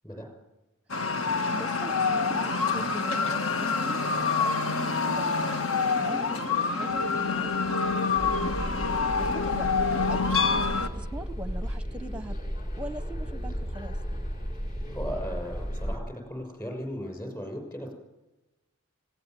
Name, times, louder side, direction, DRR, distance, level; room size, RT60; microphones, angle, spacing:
sound 1, 0.9-10.9, left 4 dB, 70° left, 1.6 m, -27 dB
voice 1, 1.5-5.3 6.0-8.1 8.4-8.5 9.2-9.8 10.1-10.7 11.0-12.3 12.7-14.0, right 1 dB, 5° right, 12 dB, 0.9 m, -41 dB
sound 2, 8.1-16.0, equal, 40° left, 3.1 m, -34 dB
voice 2, 14.9-17.9, equal, 15° left, 4 dB, 6.2 m, -37 dB
19.0 x 17.5 x 9.2 m, 1.0 s
head